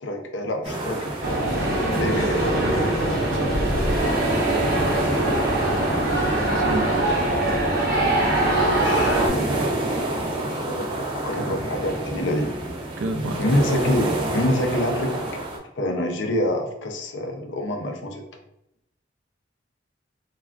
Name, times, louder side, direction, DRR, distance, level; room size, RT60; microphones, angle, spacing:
voice 1, 0.0-2.5 8.7-9.5 10.4-12.5 13.4-15.1 15.8-18.2, left 1 dB, 80° left, 3 dB, 0.5 m, -27 dB
sound 1, 0.6-15.6, right 1 dB, 25° right, 0.5 m, -29 dB
sound 2, 1.2-9.3, right 1 dB, 55° right, 0.9 m, -22 dB
voice 2, 3.3-3.7 6.5-7.0 11.4-11.5 13.0-13.6, right 2 dB, 85° right, 5 dB, 0.4 m, -30 dB
Explosion, 3.5-6.8, equal, 40° left, 1.1 m, -33 dB
3.3 x 2.3 x 2.4 m, 0.81 s
head